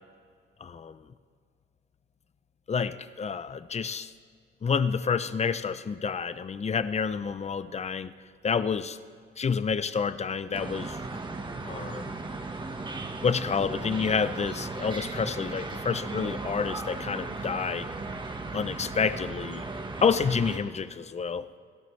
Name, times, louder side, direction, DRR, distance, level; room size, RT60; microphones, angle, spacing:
voice 1, 0.6-1.0 2.7-4.1 4.6-8.1 8.4-9.0 9.4-11.0 11.6-12.1 13.2-17.9 18.5-19.7 20.0-21.5, left 6 dB, 35° left, 13 dB, 0.7 m, -29 dB
sound 1, 10.5-20.6, right 3 dB, 25° right, 1.4 m, -36 dB
29.0 x 12.0 x 3.3 m, 2.1 s
cardioid pair, 90°, 20 cm